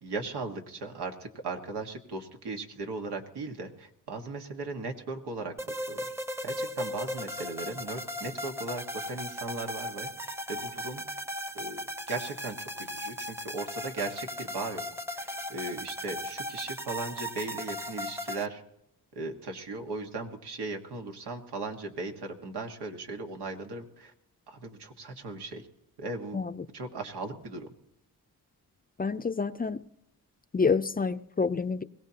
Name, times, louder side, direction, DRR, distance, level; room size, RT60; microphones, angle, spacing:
voice 1, 0.0-5.5 5.9-6.1 6.4-10.1 10.5-11.0 11.5-14.9 15.1-18.6 19.1-24.1 24.5-25.6 26.0-26.4 26.7-27.7, right 3 dB, 90° right, 3 dB, 1.7 m, -37 dB
sound 1, 5.6-18.5, left 1 dB, 5° right, 0.8 m, -37 dB
voice 2, 26.3-26.6 29.0-29.8 30.5-31.8, left 5 dB, 25° left, 12 dB, 0.5 m, -28 dB
21.5 x 16.5 x 2.9 m, 0.79 s
cardioid pair, 75°, 38 cm